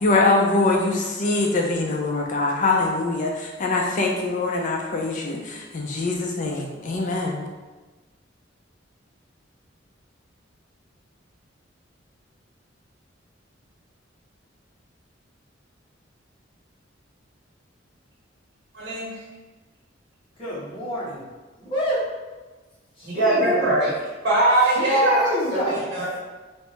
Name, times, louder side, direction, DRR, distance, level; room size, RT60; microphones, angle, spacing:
voice 1, 0.0-7.4, left 3 dB, 45° left, 0 dB, 0.5 m, -23 dB
voice 2, 18.7-19.1 23.0-23.9 24.2-26.2, right 1 dB, 65° right, -7 dB, 1.3 m, -21 dB
voice 3, 20.4-21.2 21.6-22.0 23.0-23.7 24.7-25.8, equal, 25° left, -9 dB, 1.4 m, -28 dB
3.4 x 2.6 x 4.3 m, 1.2 s
head